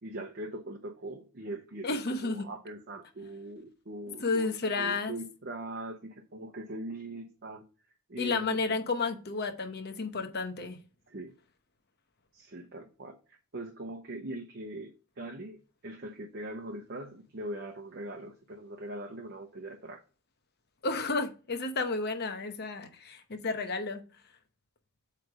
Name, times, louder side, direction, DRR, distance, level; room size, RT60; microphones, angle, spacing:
voice 1, 0.0-7.6 8.1-8.8 11.1-11.3 12.3-13.2 13.5-20.0, right 1 dB, 45° right, 0.8 m, -41 dB
voice 2, 1.8-2.5 4.2-5.2 8.2-10.8 20.8-24.0, left 3 dB, 45° left, 0.9 m, -32 dB
7.9 x 3.3 x 4.8 m
head